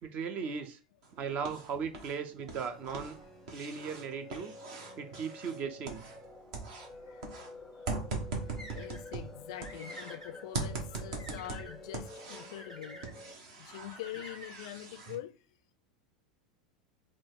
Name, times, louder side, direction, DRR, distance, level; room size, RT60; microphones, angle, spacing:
voice 1, 0.0-0.8 1.2-3.2 3.5-4.5 5.0-6.1 8.3-8.4, right 6 dB, 40° right, 0.7 m, -37 dB
sound 1, 1.0-2.2 2.4-6.3 6.5-10.1 10.5-12.7 13.0-15.2, right 3 dB, 55° right, 1.1 m, -41 dB
sound 2, 2.6-13.4, left 2 dB, 5° left, 0.5 m, -51 dB
sound 3, 8.6-9.1 9.5-10.4 10.9-11.8 12.6-13.1 13.9-14.7, equal, 80° right, 1.5 m, -49 dB
voice 2, 8.7-13.1 13.6-15.3, left 13 dB, 55° left, 0.4 m, -44 dB
4.5 x 2.4 x 4.3 m
figure-of-eight pair, 80°, 4 cm